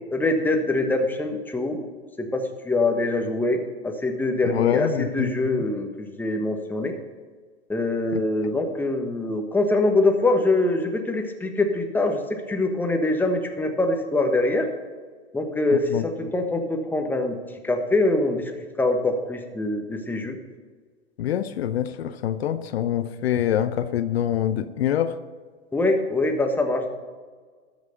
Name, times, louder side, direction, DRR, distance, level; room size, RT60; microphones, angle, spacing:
voice 1, 0.1-1.8 2.2-7.0 7.7-14.7 15.3-17.4 17.6-18.5 18.8-20.4 25.7-26.9, left 2 dB, 5° left, 4 dB, 1.2 m, -24 dB
voice 2, 4.4-5.6 8.1-8.2 15.9-16.0 21.2-25.2, left 10 dB, 65° left, 12 dB, 0.7 m, -25 dB
13.0 x 6.2 x 6.8 m, 1.5 s
hypercardioid pair, 110°, 33 cm